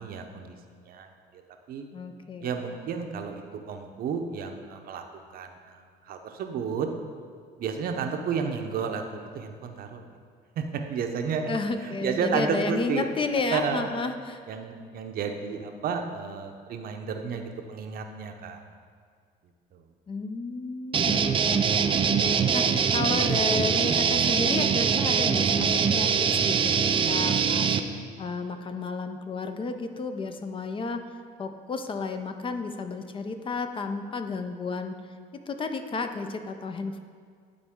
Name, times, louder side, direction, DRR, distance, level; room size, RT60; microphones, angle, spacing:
voice 1, 0.0-1.4 1.7-1.8 2.4-5.0 5.3-6.9 7.6-10.0 10.6-11.5 11.8-13.1 13.5-13.8 14.5-18.6 19.7-19.8, right 6 dB, 60° right, 5 dB, 0.7 m, -32 dB
voice 2, 1.9-2.6 11.5-14.4 20.1-27.7 27.9-31.0 31.4-35.0 35.3-37.0, left 3 dB, 30° left, 7 dB, 0.5 m, -32 dB
sound 1, 20.9-27.8, right 6 dB, 30° right, 0.4 m, -23 dB
11.0 x 4.1 x 3.6 m, 2.1 s
cardioid pair, 110°, 17 cm